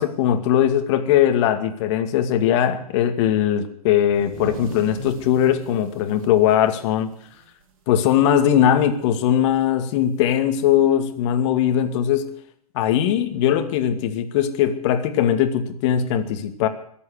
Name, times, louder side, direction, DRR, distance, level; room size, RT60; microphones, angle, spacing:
voice 1, 0.0-7.1 7.9-12.3 12.7-16.7, left 10 dB, 50° left, 8 dB, 2.4 m, -20 dB
sound 1, 4.0-7.7 8.0-8.2 8.6-9.0 10.1-10.2 11.3-11.4, right 4 dB, 65° right, 4.3 m, -38 dB
22.5 x 8.5 x 6.6 m, 0.68 s
hypercardioid pair, 120°, 19 cm